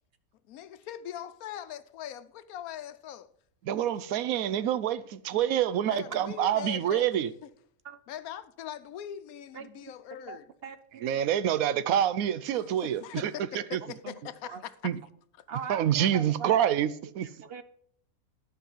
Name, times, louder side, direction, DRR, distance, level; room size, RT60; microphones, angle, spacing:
voice 1, 0.5-3.3 5.9-7.1 7.4-7.5 8.1-10.5 12.5-14.7, left 10 dB, 90° left, 1.1 m, -41 dB
voice 2, 3.6-7.3 11.0-13.3 13.7-13.8 14.8-15.0 15.7-17.3, right 10 dB, 85° right, 1.1 m, -27 dB
voice 3, 10.3-11.1 14.0-14.6 15.5-16.6 17.2-17.6, right 6 dB, 60° right, 0.7 m, -41 dB
11.5 x 5.5 x 5.5 m
omnidirectional pair, 1.5 m